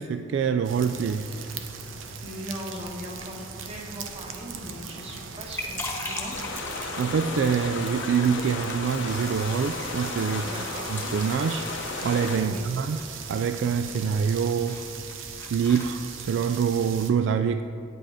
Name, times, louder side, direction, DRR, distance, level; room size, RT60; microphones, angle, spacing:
voice 1, 0.0-1.4 7.0-10.5 10.9-11.7 12.0-13.0 13.3-14.8 15.5-17.6, right 6 dB, 65° right, 9 dB, 0.3 m, -25 dB
sound 1, 0.6-17.1, right 5 dB, 90° right, 0.8 m, -40 dB
voice 2, 2.2-6.3 10.4-10.9 12.4-12.6, equal, 35° right, -1 dB, 1.5 m, -39 dB
sound 2, 5.1-16.7, left 2 dB, 10° left, 1.1 m, -42 dB
sound 3, 6.3-12.4, left 4 dB, 75° left, 0.9 m, -34 dB
8.9 x 8.3 x 5.0 m, 2.6 s
head